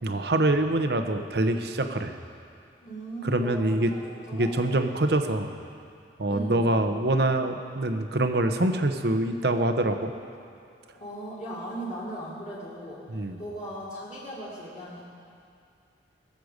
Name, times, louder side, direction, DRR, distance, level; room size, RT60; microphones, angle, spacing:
voice 1, 0.0-2.1 3.2-3.9 4.3-5.5 6.2-10.1 13.1-13.4, right 1 dB, 65° right, 7 dB, 0.9 m, -25 dB
voice 2, 2.8-4.0 4.3-4.7 6.3-6.7 11.0-13.0 13.4-15.0, right 1 dB, 40° left, -10 dB, 2.8 m, -38 dB
21.0 x 7.7 x 6.5 m, 2.5 s
head